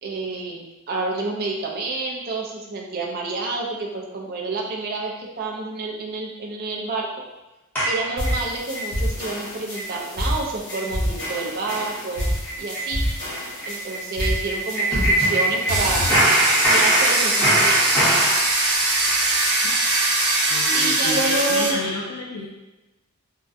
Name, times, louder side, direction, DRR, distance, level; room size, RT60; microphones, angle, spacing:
voice 1, 0.0-7.1 7.9-12.3 12.6-13.0 13.6-16.1 16.7-17.8 20.7-21.7, right 3 dB, 45° right, -1 dB, 0.5 m, -28 dB
sound 1, 7.8-8.9 9.3-9.4 9.7-10.0 10.2-10.3 10.7-10.9 11.2-11.4 11.7-11.8 12.1-15.8 16.1-18.4, right 1 dB, 10° left, 0.9 m, -22 dB
sound 2, 8.2-16.2, equal, 55° left, 0.7 m, -28 dB
Domestic sounds home sounds, 15.7-21.7, right 2 dB, 80° right, 0.8 m, -21 dB
voice 2, 20.5-22.5, left 2 dB, 90° left, -4 dB, 0.4 m, -30 dB
3.6 x 2.2 x 2.6 m, 1.1 s
head